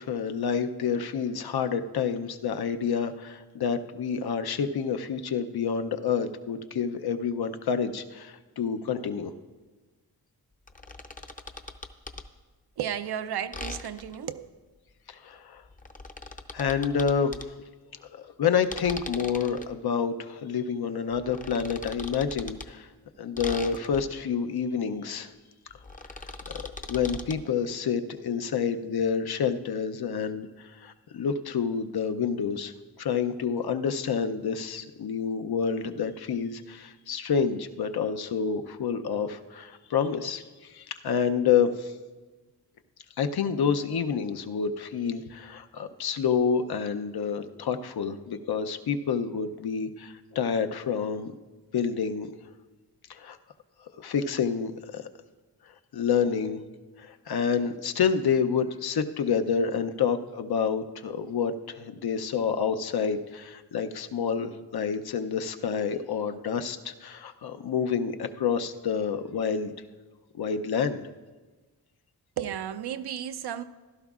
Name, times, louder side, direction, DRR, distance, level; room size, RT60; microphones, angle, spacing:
voice 1, 0.0-9.3 15.1-15.6 16.5-17.4 18.1-22.9 23.2-25.3 26.5-26.6 26.9-30.5 30.8-32.7 33.0-41.9 43.2-51.3 51.7-52.3 53.1-53.4 54.0-55.0 55.9-56.6 57.0-69.7 70.3-71.0, left 6 dB, 70° left, 0.7 m, -28 dB
sound 1, 10.7-12.3 13.5-14.2 15.6-17.5 18.6-19.7 21.1-22.7 23.4-24.2 25.7-27.4, left 3 dB, 20° left, 0.6 m, -40 dB
voice 2, 12.8-14.5 72.4-73.6, right 9 dB, 75° right, 0.6 m, -33 dB
16.0 x 12.0 x 2.4 m
wide cardioid pair, 80°, 39 cm